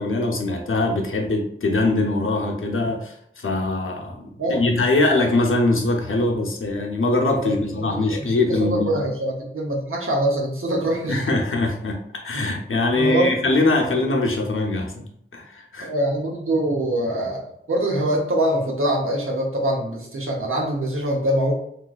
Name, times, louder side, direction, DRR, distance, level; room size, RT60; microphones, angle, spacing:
voice 1, 0.0-9.0 11.1-15.9, left 2 dB, 80° left, 2 dB, 0.7 m, -22 dB
voice 2, 7.4-11.2 12.9-13.3 15.8-17.4 17.7-21.6, right 1 dB, 90° right, -1 dB, 0.8 m, -24 dB
3.2 x 3.0 x 2.4 m, 0.72 s
wide cardioid pair, 60°, 21 cm